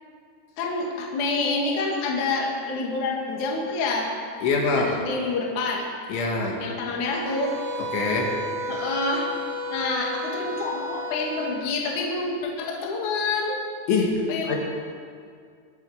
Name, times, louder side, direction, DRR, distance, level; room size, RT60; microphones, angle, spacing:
voice 1, 0.6-4.1 4.7-5.9 6.6-7.5 8.7-9.3 9.7-13.6 14.3-14.6, left 3 dB, 50° left, -1 dB, 2.9 m, -27 dB
voice 2, 4.4-5.0 6.1-6.6 7.9-8.4 13.9-14.6, left 4 dB, 75° left, -1 dB, 4.3 m, -24 dB
sound 1, 7.0-11.6, equal, 50° right, 3.8 m, -33 dB
23.0 x 11.5 x 5.0 m, 2.2 s
omnidirectional pair, 5.5 m